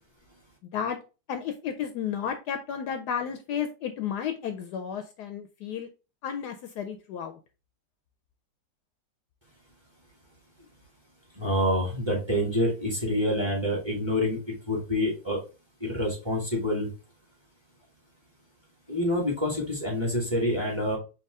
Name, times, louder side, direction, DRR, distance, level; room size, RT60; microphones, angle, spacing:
voice 1, 1.3-5.9 6.2-7.4, left 8 dB, 70° left, 7 dB, 1.0 m, -32 dB
voice 2, 11.4-14.4 14.7-15.4 15.8-16.9 18.9-21.0, left 1 dB, 15° right, -1 dB, 1.3 m, -27 dB
4.7 x 2.8 x 3.5 m, 0.31 s
omnidirectional pair, 2.0 m